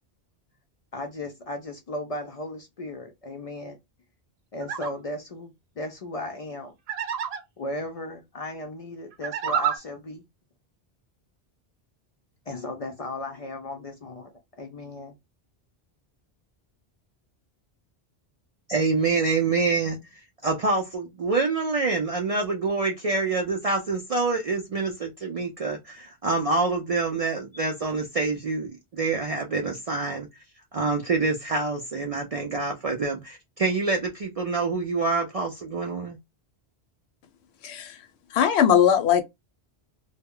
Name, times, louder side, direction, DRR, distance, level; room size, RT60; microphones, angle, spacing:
voice 1, 0.9-3.8 4.5-6.7 7.6-10.2 12.5-15.2, left 1 dB, 55° left, 0.4 m, -36 dB
sound 1, 4.6-4.9 6.9-7.4 9.1-9.8, right 8 dB, 75° right, 0.8 m, -28 dB
voice 2, 18.7-30.3 30.7-36.2, right 3 dB, 55° right, 0.4 m, -26 dB
voice 3, 37.6-38.0 38.3-39.2, left 9 dB, 80° left, 0.8 m, -19 dB
2.2 x 2.0 x 3.6 m
omnidirectional pair, 1.1 m